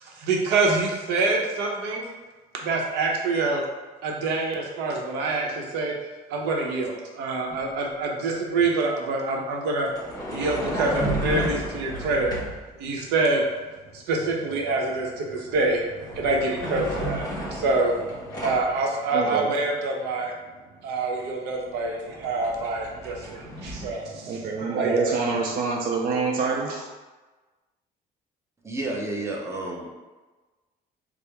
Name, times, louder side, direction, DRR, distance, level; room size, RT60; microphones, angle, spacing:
voice 1, 0.0-2.1 2.6-3.6 4.0-5.9 6.3-9.9 10.3-12.3 12.8-13.4 13.9-20.3 20.8-25.1, right 3 dB, 90° right, 0 dB, 0.7 m, -26 dB
sound 1, 7.5-7.7 9.8-12.7 15.3-15.6 15.9-18.7 21.2-21.3 21.6-23.9, equal, 25° left, 1.0 m, -33 dB
voice 2, 19.1-19.5 24.3-26.9, right 4 dB, 60° right, -1 dB, 0.5 m, -26 dB
voice 3, 28.6-29.9, right 2 dB, 15° right, -1 dB, 0.7 m, -30 dB
4.5 x 2.0 x 3.4 m, 1.2 s
cardioid pair, 110°, 17 cm